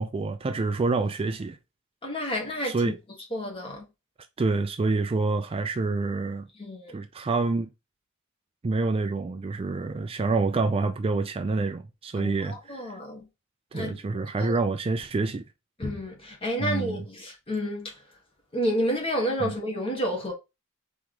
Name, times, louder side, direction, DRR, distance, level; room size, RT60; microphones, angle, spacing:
voice 1, 0.0-1.6 2.6-3.0 4.4-6.5 6.9-7.7 8.6-13.0 13.7-15.4 16.6-17.0 19.4-19.5, right 3 dB, 25° right, 0.3 m, -27 dB
voice 2, 2.0-2.8 3.3-3.8 6.6-6.9 12.2-13.2 13.7-14.0 14.4-14.5 15.8-17.9 18.5-20.3, equal, 25° left, 1.5 m, -30 dB
4.5 x 3.0 x 3.7 m
head